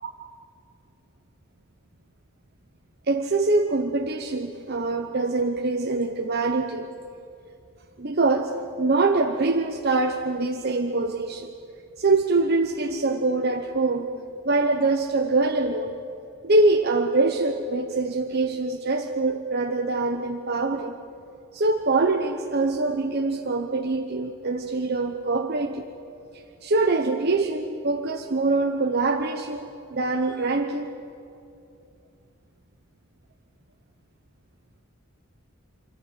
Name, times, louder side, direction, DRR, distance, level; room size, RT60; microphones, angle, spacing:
voice 1, 3.1-6.9 8.0-11.5 12.0-14.1 14.4-16.0 16.4-20.9 21.5-25.9 26.3-30.9, right 3 dB, 50° right, 6 dB, 0.9 m, -24 dB
26.0 x 14.5 x 9.9 m, 2.7 s
head